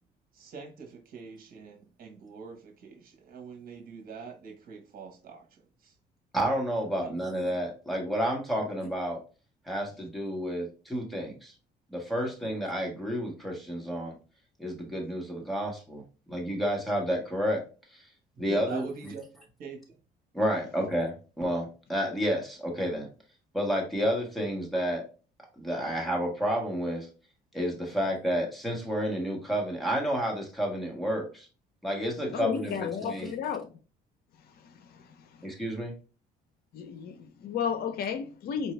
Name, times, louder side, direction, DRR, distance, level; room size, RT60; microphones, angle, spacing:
voice 1, 0.3-5.9 7.0-7.3 18.5-19.2 19.6-20.0, right 5 dB, 60° right, 1.2 m, -44 dB
voice 2, 6.3-9.2 9.7-11.5 11.9-14.2 14.6-16.0 16.3-17.6 17.9-18.0 18.4-18.8 20.3-23.1 23.5-25.0 25.6-27.1 27.5-31.5 31.8-33.3 35.4-35.9, equal, ahead, 1.5 m, -30 dB
voice 3, 32.3-33.7 34.6-35.1 35.4-35.5 36.7-38.7, left 7 dB, 65° left, 0.6 m, -33 dB
4.5 x 2.7 x 3.2 m
cardioid pair, 110°, 17 cm